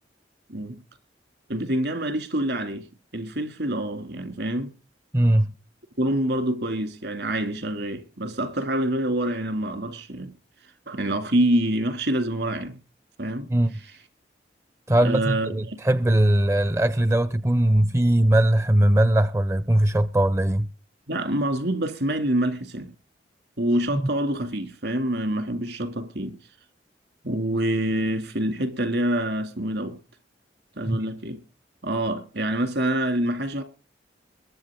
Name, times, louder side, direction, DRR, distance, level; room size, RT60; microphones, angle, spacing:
voice 1, 0.5-0.8 1.5-2.9 3.1-4.7 6.0-10.3 10.9-12.8 13.2-13.5 15.0-15.8 21.1-22.9 23.6-26.4 27.2-30.0 30.8-31.4 31.8-33.6, right 1 dB, 75° right, 2.5 m, -26 dB
voice 2, 5.1-5.5 13.5-13.7 14.9-20.7 23.9-24.0 30.8-31.0, right 1 dB, 15° right, 0.5 m, -20 dB
22.0 x 8.3 x 3.7 m
head